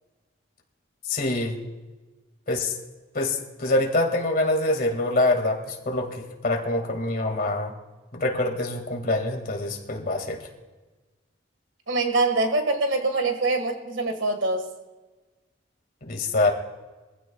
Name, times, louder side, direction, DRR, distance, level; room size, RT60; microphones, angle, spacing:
voice 1, 1.1-1.6 2.5-2.7 3.1-7.7 8.1-10.4 16.0-16.5, left 2 dB, 45° left, 3 dB, 2.1 m, -25 dB
voice 2, 11.9-14.7, right 2 dB, 85° right, 6 dB, 1.7 m, -24 dB
23.0 x 15.5 x 2.3 m, 1.2 s
head